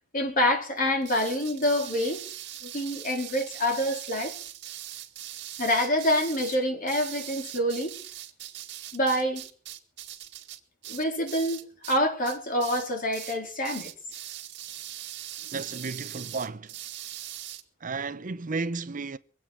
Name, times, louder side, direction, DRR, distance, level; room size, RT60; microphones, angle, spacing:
voice 1, 0.1-2.2 2.6-4.3 5.6-7.9 8.9-9.5 10.9-11.6 11.9-13.9, left 1 dB, 45° left, 4.0 m, -26 dB
sound 1, 1.0-12.0 12.2-12.9 13.1-13.4 13.6-17.6, right 12 dB, 65° right, 2.2 m, -41 dB
voice 2, 15.5-16.7 17.8-19.2, right 4 dB, 45° right, 0.7 m, -33 dB
23.5 x 9.1 x 6.1 m
head